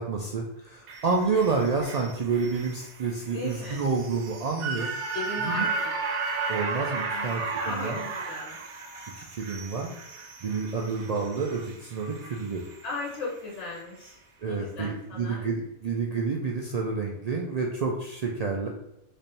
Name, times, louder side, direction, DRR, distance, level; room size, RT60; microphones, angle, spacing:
voice 1, 0.0-4.9 5.4-5.7 6.5-8.0 9.2-9.9 10.4-12.6 14.4-18.7, right 4 dB, 70° right, -1 dB, 0.3 m, -29 dB
sound 1, 0.9-13.2 13.6-13.7, right 4 dB, 85° right, 1.0 m, -35 dB
voice 2, 3.3-3.9 5.1-5.9 7.1-8.6 12.8-15.4, left 3 dB, 85° left, -4 dB, 1.2 m, -37 dB
3.3 x 2.5 x 4.1 m, 0.82 s
omnidirectional pair, 1.2 m